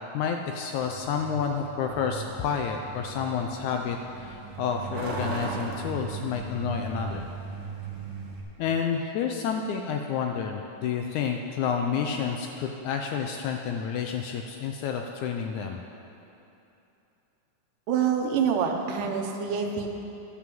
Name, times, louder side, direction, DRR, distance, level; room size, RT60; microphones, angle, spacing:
voice 1, 0.1-7.3 8.6-15.8, left 7 dB, 80° left, 3 dB, 1.7 m, -30 dB
Truck, 0.8-8.4, right 4 dB, 50° right, 1.6 m, -38 dB
voice 2, 17.9-19.9, right 7 dB, 75° right, 3 dB, 2.4 m, -26 dB
12.0 x 6.2 x 7.5 m, 2.9 s
omnidirectional pair, 3.9 m